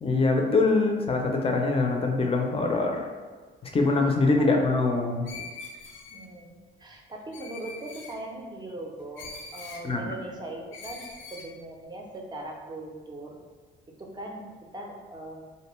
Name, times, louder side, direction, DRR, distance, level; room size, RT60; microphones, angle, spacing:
voice 1, 0.0-3.1 3.6-5.3 9.8-10.1, left 3 dB, 30° left, 2 dB, 0.5 m, -24 dB
Screech, 5.2-6.3 7.3-8.2 9.2-9.8 10.7-11.5, left 4 dB, 80° left, 0.5 m, -42 dB
voice 2, 6.1-13.4 14.0-14.5 14.7-15.4, right 2 dB, 20° right, 0 dB, 0.5 m, -40 dB
2.6 x 2.1 x 3.0 m, 1.4 s
cardioid pair, 90°, 20 cm